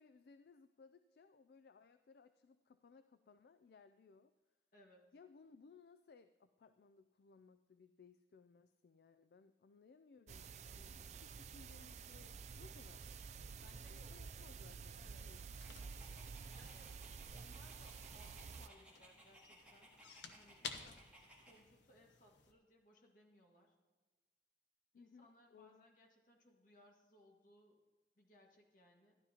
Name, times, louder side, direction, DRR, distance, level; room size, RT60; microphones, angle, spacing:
voice 1, 0.0-4.3 5.1-13.6 13.9-15.4 24.9-25.9, left 5 dB, 65° left, 11 dB, 0.3 m, -64 dB
voice 2, 4.7-5.1 13.6-14.1 14.9-15.3 16.5-19.9 20.3-23.7 24.9-27.8 28.1-29.2, left 1 dB, 50° left, 0 dB, 1.7 m, -66 dB
sound 1, 10.3-18.7, right 5 dB, 40° right, 0.3 m, -51 dB
sound 2, 13.6-22.5, left 5 dB, 90° left, 0.9 m, -56 dB
Dog, 15.6-21.6, right 1 dB, 5° right, 1.9 m, -63 dB
12.5 x 11.0 x 2.8 m, 1.3 s
head